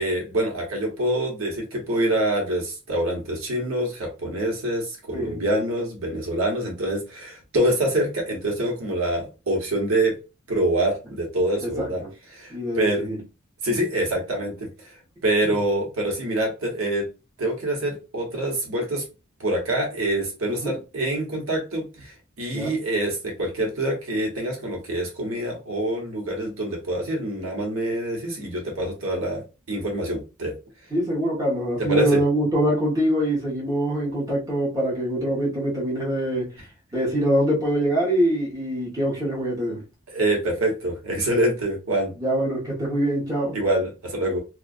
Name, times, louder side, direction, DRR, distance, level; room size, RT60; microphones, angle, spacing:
voice 1, 0.0-10.2 10.5-12.0 12.3-13.1 13.6-14.7 15.2-17.1 17.4-19.0 19.4-30.5 31.9-32.2 40.1-42.1 43.5-44.4, right 1 dB, 85° right, 1.0 m, -25 dB
voice 2, 11.6-12.1 12.5-13.2 15.4-15.6 20.5-20.7 22.5-22.7 30.9-36.7 36.9-39.8 42.2-43.6, right 1 dB, 15° right, 1.0 m, -24 dB
2.5 x 2.3 x 2.4 m
head